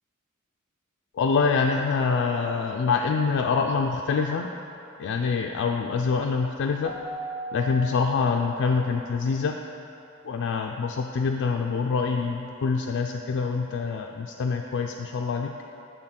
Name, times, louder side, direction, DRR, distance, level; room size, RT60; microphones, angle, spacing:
voice 1, 1.2-4.5 5.0-6.9 7.5-9.5 10.2-15.5, left 5 dB, 55° left, 2 dB, 0.3 m, -25 dB
Keyboard (musical), 6.8-9.1, right 1 dB, 85° right, 0.9 m, -38 dB
7.7 x 3.9 x 5.7 m, 2.9 s
head